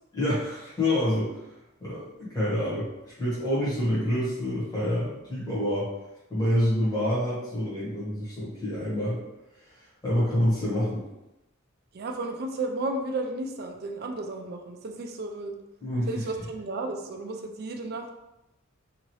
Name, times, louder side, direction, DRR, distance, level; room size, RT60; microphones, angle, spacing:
voice 1, 0.1-1.3 1.8-5.9 6.3-9.2 9.7-11.0 15.8-16.1, left 1 dB, 20° left, -10 dB, 1.3 m, -27 dB
voice 2, 11.9-15.5 16.1-18.1, right 2 dB, 50° right, 4 dB, 0.4 m, -33 dB
2.8 x 2.6 x 3.1 m, 0.92 s
head